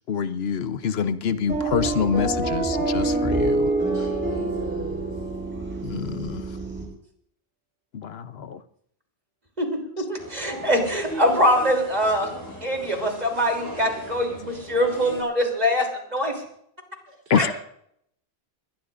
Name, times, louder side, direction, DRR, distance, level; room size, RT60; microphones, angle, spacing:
voice 1, 0.1-3.7 5.8-6.4 7.9-8.6 17.3-17.6, left 7 dB, 70° left, 12 dB, 1.0 m, -26 dB
sound 1, 1.5-6.8, right 2 dB, 10° right, 6.9 m, -26 dB
voice 2, 3.9-5.1 17.1-17.6, equal, 80° right, -2 dB, 4.0 m, -36 dB
voice 3, 9.6-12.3 12.6-16.4, equal, 40° right, 2 dB, 3.3 m, -23 dB
sound 2, 10.2-15.2, equal, 20° left, 7.7 m, -38 dB
21.5 x 19.5 x 2.5 m, 0.70 s
omnidirectional pair, 1.1 m